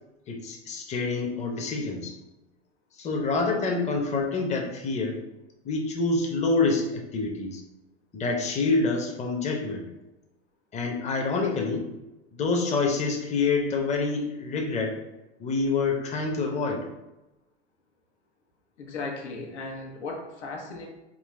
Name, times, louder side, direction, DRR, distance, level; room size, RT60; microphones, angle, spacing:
voice 1, 0.3-2.2 3.0-5.2 5.6-7.6 8.1-9.9 10.7-11.8 12.3-15.0 15.4-16.9, left 3 dB, 20° left, 1 dB, 0.6 m, -27 dB
voice 2, 18.8-20.9, left 3 dB, 90° left, 0 dB, 1.0 m, -36 dB
3.8 x 2.8 x 3.2 m, 0.99 s
hypercardioid pair, 105°, 33 cm